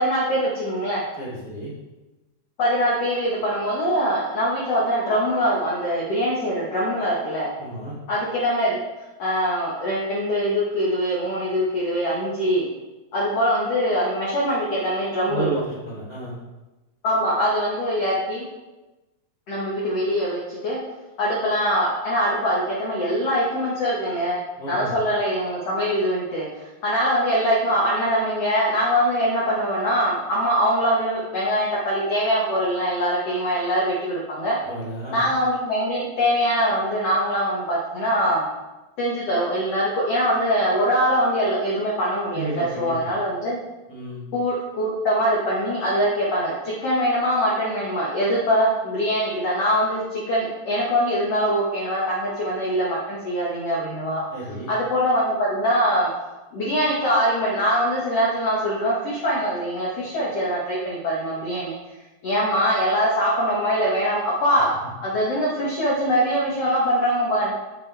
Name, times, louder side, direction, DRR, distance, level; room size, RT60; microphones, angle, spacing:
voice 1, 0.0-1.0 2.6-7.5 8.1-8.8 9.2-12.6 13.1-15.5 17.0-18.4 19.5-20.8 21.2-24.4 24.7-34.6 35.1-38.4 39.0-43.6 44.3-54.2 54.7-56.1 56.5-61.7 62.2-64.7 65.0-67.5, equal, 80° left, -6 dB, 1.4 m, -23 dB
voice 2, 1.2-1.7 7.6-8.0 15.3-16.4 24.6-25.0 34.6-35.2 42.3-43.1 43.9-44.2 54.3-54.7, right 2 dB, 15° right, -9 dB, 1.8 m, -31 dB
7.9 x 6.9 x 3.4 m, 1.1 s
omnidirectional pair, 5.0 m